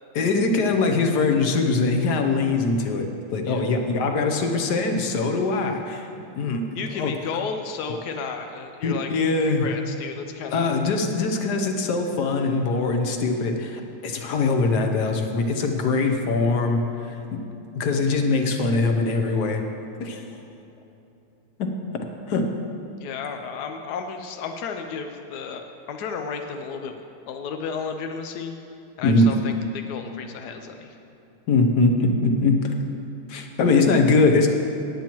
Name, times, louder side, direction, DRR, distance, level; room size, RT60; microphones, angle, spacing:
voice 1, 0.1-3.1 3.3-6.1 6.4-6.7 7.0-7.1 8.8-9.7 10.5-17.4 17.7-19.6 20.0-20.3 21.6-21.7 22.3-22.5 29.0-29.4 31.5-32.7 33.3-34.5, left 3 dB, 60° left, 4 dB, 1.3 m, -22 dB
voice 2, 6.7-9.1 9.4-10.7 23.0-27.0 27.3-28.5 29.0-31.0, left 5 dB, 75° left, 5 dB, 0.9 m, -33 dB
18.0 x 8.8 x 3.0 m, 2.9 s
omnidirectional pair, 2.4 m